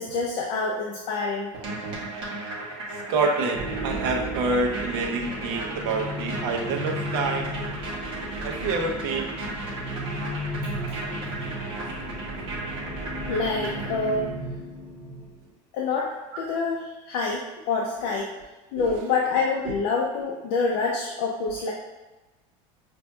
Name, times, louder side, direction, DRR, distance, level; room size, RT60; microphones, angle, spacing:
voice 1, 0.0-1.5 13.3-14.3 15.7-18.3 18.7-21.7, left 4 dB, 60° left, -1 dB, 0.5 m, -27 dB
sound 1, 1.5-14.3, right 2 dB, 40° right, 1.0 m, -35 dB
voice 2, 3.1-7.5 8.4-9.3 11.8-11.9 18.7-19.0, right 3 dB, 65° right, 2 dB, 0.7 m, -27 dB
sound 2, 3.5-15.5, equal, 5° right, 0.4 m, -35 dB
5.4 x 2.5 x 2.3 m, 1.1 s
cardioid pair, 170°, 14 cm